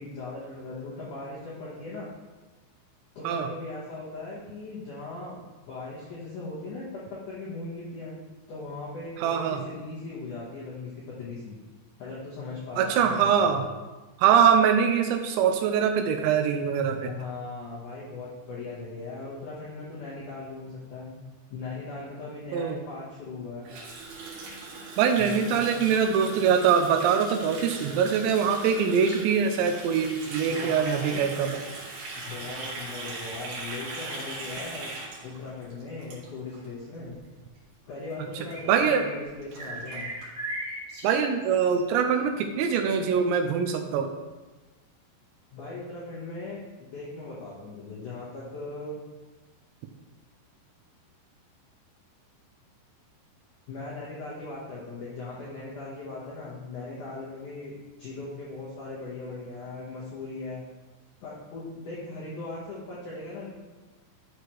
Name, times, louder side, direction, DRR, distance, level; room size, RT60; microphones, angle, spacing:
voice 1, 0.0-2.1 3.2-8.2 8.5-11.6 12.0-13.6 17.0-21.1 21.5-23.7 25.2-25.9 30.5-31.3 32.2-34.9 35.2-37.2 37.9-40.1 45.5-49.0 53.7-60.6 61.2-63.5, left 3 dB, 80° left, -6 dB, 1.8 m, -39 dB
voice 2, 9.2-9.6 12.8-13.6 14.2-17.1 22.5-22.8 25.0-31.6 38.4-39.1 41.0-44.1, right 7 dB, 80° right, 5 dB, 2.7 m, -23 dB
Water tap faucet, 23.6-36.7 36.9-37.2 37.5-37.8 38.1-38.2 38.4-38.5 38.9-39.0 39.2-40.3, right 3 dB, 65° right, 3.6 m, -40 dB
sound 1, 38.0-39.3 39.5-41.8, right 1 dB, 45° right, 1.4 m, -38 dB
12.5 x 4.8 x 3.1 m, 1.2 s
omnidirectional pair, 5.4 m